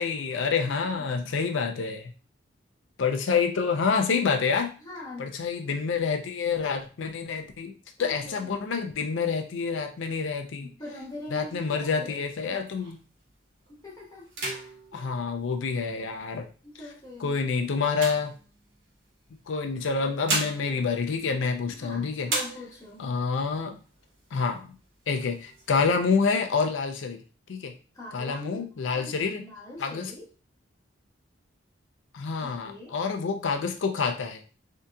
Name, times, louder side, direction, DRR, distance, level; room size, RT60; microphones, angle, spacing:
voice 1, 0.0-2.1 3.0-4.7 5.2-7.7 8.0-10.7 11.3-13.0 14.9-16.5 17.2-18.3 19.5-22.3 23.0-23.8 24.3-24.8 25.1-27.2 27.5-27.7 28.1-29.4 29.8-30.1 32.1-34.4, left 5 dB, 75° left, 5 dB, 0.5 m, -27 dB
voice 2, 0.7-1.1 4.8-5.3 8.0-8.5 10.6-12.1 12.5-12.6 13.7-15.0 16.6-17.3 21.7-23.0 27.9-30.3 32.4-33.0, left 1 dB, 20° left, -4 dB, 1.1 m, -43 dB
sound 1, 11.0-13.2 13.7-13.9 14.2-16.2 16.8-19.0 19.9-21.9 22.2-23.1 23.5-23.6 23.9-24.6 25.0-25.9, right 2 dB, 90° right, 1.3 m, -36 dB
3.6 x 2.8 x 2.2 m, 0.36 s
head